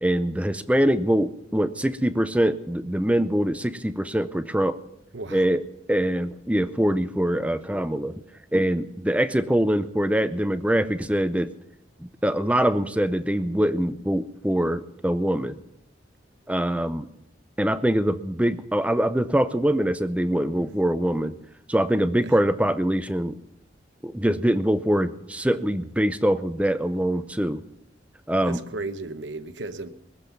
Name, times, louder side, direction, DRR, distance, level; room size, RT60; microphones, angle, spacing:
voice 1, 0.0-4.8 5.3-5.6 5.9-8.1 8.5-11.5 12.0-15.6 16.5-17.1 17.6-21.3 21.7-23.4 24.0-27.6 28.3-28.6, right 1 dB, 5° right, 0.5 m, -23 dB
voice 2, 5.1-5.5 20.6-20.7 22.2-22.3 28.4-29.9, right 2 dB, 85° right, 0.9 m, -35 dB
20.5 x 7.6 x 7.1 m
head